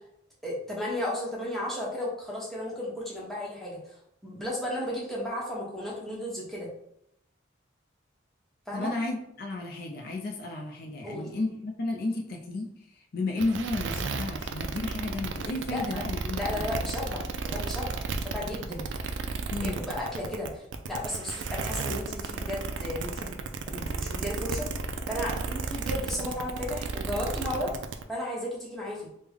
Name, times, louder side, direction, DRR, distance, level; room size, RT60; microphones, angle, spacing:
voice 1, 0.4-3.8 4.2-6.7 8.7-8.9 11.0-11.3 15.7-16.0 16.3-18.9 19.6-23.4 23.7-24.7 25.1-27.7 28.1-29.1, left 1 dB, ahead, -5 dB, 0.9 m, -34 dB
voice 2, 8.7-12.7 13.1-16.6 19.5-19.8, left 2 dB, 55° left, 2 dB, 0.4 m, -32 dB
sound 1, 13.4-28.0, right 4 dB, 75° right, 0.3 m, -33 dB
3.4 x 2.1 x 3.4 m, 0.77 s
head